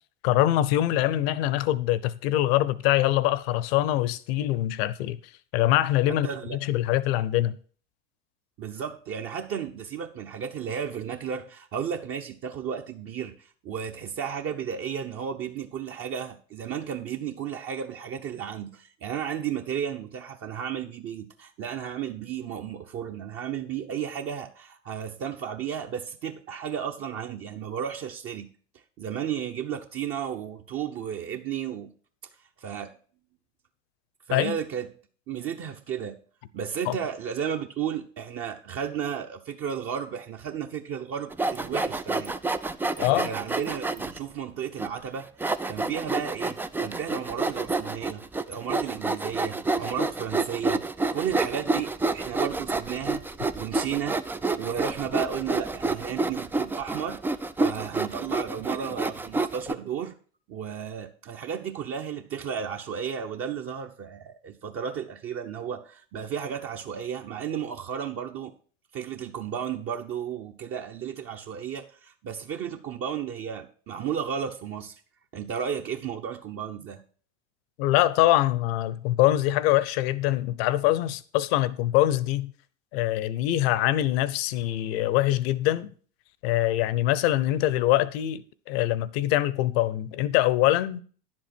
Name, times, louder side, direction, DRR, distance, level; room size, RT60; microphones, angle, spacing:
voice 1, 0.2-5.2 5.5-7.6 34.3-34.6 36.9-37.0 43.0-43.3 77.8-82.5 82.9-85.9 86.4-91.0, left 14 dB, 55° left, 0.9 m, -24 dB
voice 2, 6.1-6.6 8.6-28.5 29.0-31.9 32.6-32.9 34.3-34.9 35.3-36.2 36.5-42.4 43.0-50.8 51.1-53.2 53.5-54.2 54.5-57.2 57.6-60.1 60.5-68.5 68.9-74.9 75.3-77.0, right 8 dB, 35° right, 1.1 m, -33 dB
Sawing, 41.3-44.2 44.8-44.9 45.4-59.7, right 3 dB, 5° right, 0.4 m, -28 dB
10.5 x 7.7 x 4.5 m
hypercardioid pair, 85°, 37 cm